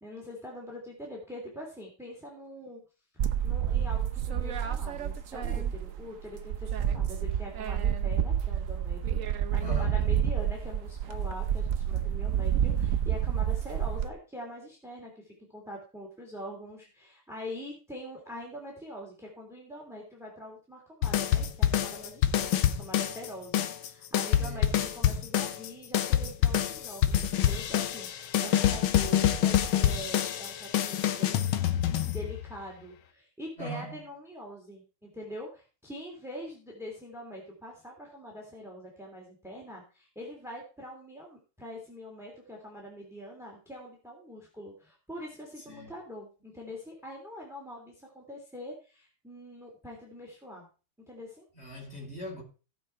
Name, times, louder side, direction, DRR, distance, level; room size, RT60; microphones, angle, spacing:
voice 1, 0.0-2.8 3.1-31.5 32.0-50.7 51.1-51.4, equal, ahead, 3.0 m, -44 dB
sound 1, 3.2-6.1 6.4-14.1, right 9 dB, 60° right, 0.9 m, -29 dB
voice 2, 9.6-10.0 24.4-24.8 33.6-34.0 45.7-45.9 51.6-52.4, right 1 dB, 25° left, 5.5 m, -40 dB
sound 2, 21.0-23.3 23.5-32.6, left 11 dB, 75° left, 1.7 m, -26 dB
17.0 x 6.3 x 4.5 m
omnidirectional pair, 2.4 m